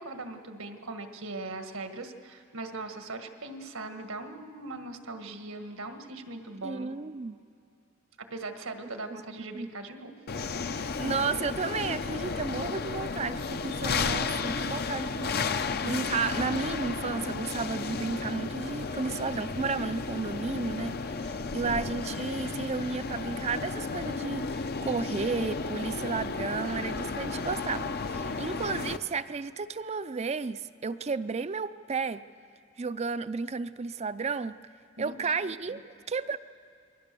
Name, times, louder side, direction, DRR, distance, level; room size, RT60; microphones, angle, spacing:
voice 1, 0.0-6.9 8.2-10.1 21.5-21.8 35.0-35.2 35.7-35.8, right 2 dB, 85° right, 6 dB, 1.7 m, -40 dB
voice 2, 6.6-7.4 9.1-9.2 9.5-9.7 11.0-20.9 21.2-32.2 32.8-34.6 35.0-35.8 36.1-36.4, right 4 dB, 30° right, 13 dB, 0.5 m, -33 dB
sound 1, 10.3-29.0, left 4 dB, 50° left, 0.7 m, -33 dB
28.0 x 21.5 x 6.9 m, 2.5 s
head